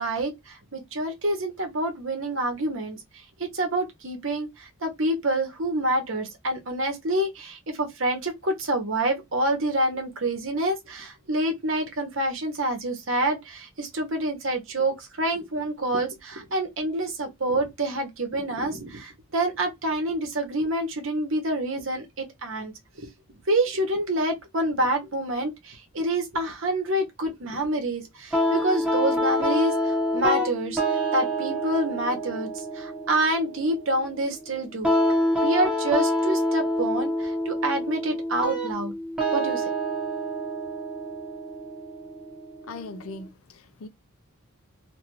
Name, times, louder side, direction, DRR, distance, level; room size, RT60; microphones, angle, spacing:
voice 1, 0.0-23.1 23.5-30.8 31.1-34.9 35.4-38.9 39.3-39.6, right 1 dB, 60° right, 1.0 m, -27 dB
sound 1, 28.3-43.3, equal, 5° right, 0.9 m, -27 dB
voice 2, 42.6-43.9, left 3 dB, 70° left, 0.5 m, -40 dB
2.7 x 2.5 x 2.9 m
head